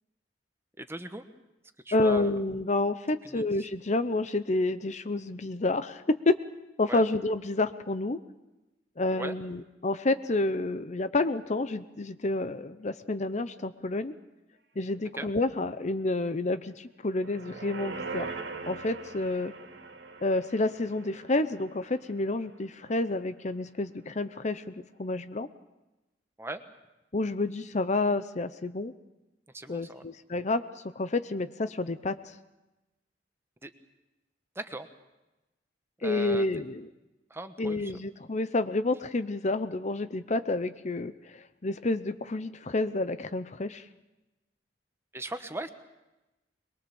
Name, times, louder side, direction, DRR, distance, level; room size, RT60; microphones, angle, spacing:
voice 1, 0.8-1.2 1.8-2.3 3.3-3.7 6.9-7.0 9.1-9.4 15.1-15.3 26.4-26.6 29.5-30.0 33.6-33.7 34.5-34.9 36.0-36.5 37.3-37.9 45.1-45.7, right 2 dB, 15° right, 9 dB, 1.1 m, -38 dB
voice 2, 1.9-6.3 6.8-8.2 9.0-14.1 14.8-18.3 18.7-19.5 20.2-25.5 27.1-28.9 29.7-30.7 31.0-32.3 36.0-36.9 37.6-43.9, left 2 dB, 40° left, 12 dB, 0.7 m, -29 dB
sound 1, 17.1-22.5 22.8-22.9, right 3 dB, 70° right, 2.4 m, -41 dB
22.5 x 22.0 x 7.0 m, 1.0 s
head